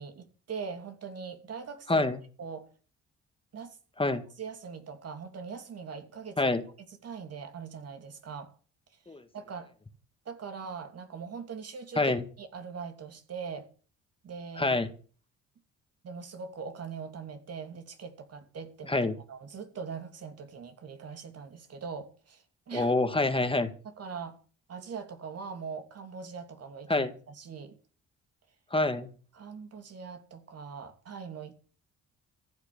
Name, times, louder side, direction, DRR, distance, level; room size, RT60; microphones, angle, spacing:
voice 1, 0.0-2.0 2.4-2.7 3.5-3.8 4.4-6.5 7.0-8.5 9.3-9.7 10.2-12.1 12.4-13.7 14.2-14.8 16.0-22.9 24.0-24.4 24.7-27.8 29.3-31.5, right 6 dB, 55° right, 2.8 m, -41 dB
voice 2, 1.9-2.2 4.0-4.2 6.4-6.6 9.1-9.2 11.9-12.2 14.6-14.9 18.9-19.1 22.7-23.7 26.9-27.1 28.7-29.1, left 2 dB, 15° left, 1.8 m, -26 dB
15.0 x 8.0 x 8.7 m
cardioid pair, 90°, 30 cm